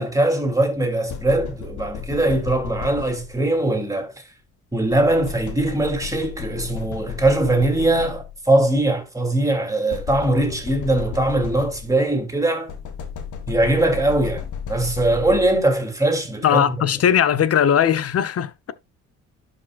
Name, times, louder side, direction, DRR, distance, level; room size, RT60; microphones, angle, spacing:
voice 1, 0.0-4.1 4.7-12.7 13.5-16.8, right 2 dB, 10° right, 2.8 m, -21 dB
sound 1, 1.1-3.6 4.9-8.5 9.9-12.1 12.7-15.8, left 8 dB, 80° left, 1.8 m, -33 dB
voice 2, 16.4-18.7, left 9 dB, 50° left, 0.9 m, -19 dB
12.0 x 5.2 x 2.4 m
cardioid pair, 90°, 30 cm